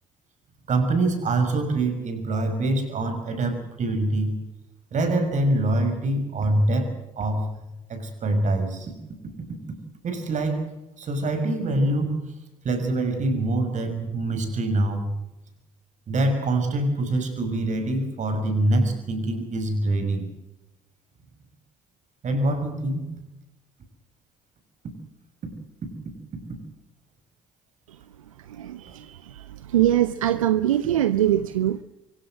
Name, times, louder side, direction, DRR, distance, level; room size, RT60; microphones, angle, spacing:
voice 1, 0.7-4.3 4.9-8.9 10.0-10.7 11.0-12.2 12.6-15.1 16.1-20.3 22.2-23.1, right 2 dB, 45° right, 7 dB, 6.3 m, -25 dB
voice 2, 28.4-31.8, right 12 dB, 80° right, 14 dB, 0.7 m, -23 dB
24.5 x 16.5 x 7.6 m, 0.95 s
figure-of-eight pair, 55°, 17 cm